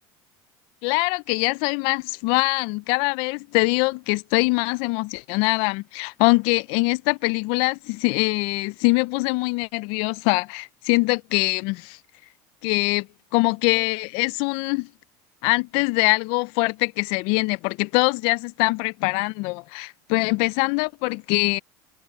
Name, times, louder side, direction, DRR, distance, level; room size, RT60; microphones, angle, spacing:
voice 1, 0.8-12.0 12.6-13.1 13.3-14.9 15.4-21.6, left 27 dB, 70° left, 0.4 m, -23 dB
supercardioid pair, 120°, 10 cm